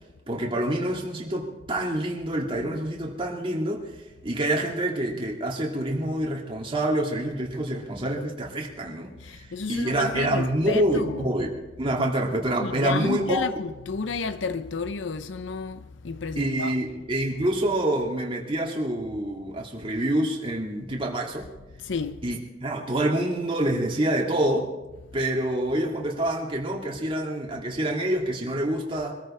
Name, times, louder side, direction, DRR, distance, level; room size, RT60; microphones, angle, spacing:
voice 1, 0.3-3.9 4.2-11.5 11.8-13.5 16.4-21.5 22.2-24.7 25.1-29.1, right 1 dB, 30° right, 2.3 m, -27 dB
voice 2, 9.2-11.3 12.6-16.7 21.8-22.2, left 4 dB, 75° left, 0.6 m, -31 dB
23.5 x 14.0 x 4.4 m
head